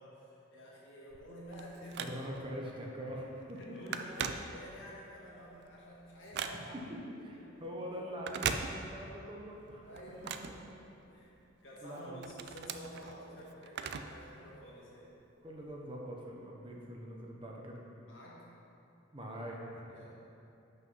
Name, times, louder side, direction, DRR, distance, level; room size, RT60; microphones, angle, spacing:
voice 1, 0.0-2.1 3.6-6.9 7.3-7.5 9.8-15.1 18.0-18.5 19.9-20.1, equal, 75° left, -6 dB, 1.8 m, -50 dB
Telephone, 1.1-2.5 3.0-3.2 3.5-5.0 5.4-6.9 8.1-9.2 9.5-11.3 11.8-14.3 14.6-14.7 15.5-15.6, right 7 dB, 55° right, 0.3 m, -40 dB
voice 2, 2.0-3.6 6.5-9.9 10.6-10.7 11.8-12.2 15.4-17.8 19.1-20.1, equal, 25° right, -1 dB, 0.8 m, -43 dB
6.0 x 5.5 x 5.5 m, 2.9 s
head